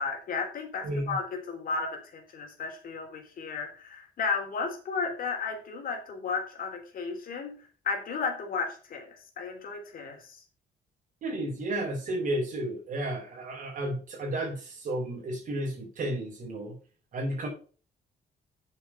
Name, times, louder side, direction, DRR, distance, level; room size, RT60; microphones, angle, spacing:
voice 1, 0.0-7.6 7.8-10.4, left 4 dB, 55° left, 3 dB, 3.5 m, -34 dB
voice 2, 0.8-1.2 11.2-16.8 17.1-17.5, right 1 dB, 50° right, -2 dB, 4.2 m, -32 dB
8.5 x 6.7 x 5.6 m, 0.38 s
cardioid pair, 140°, 17 cm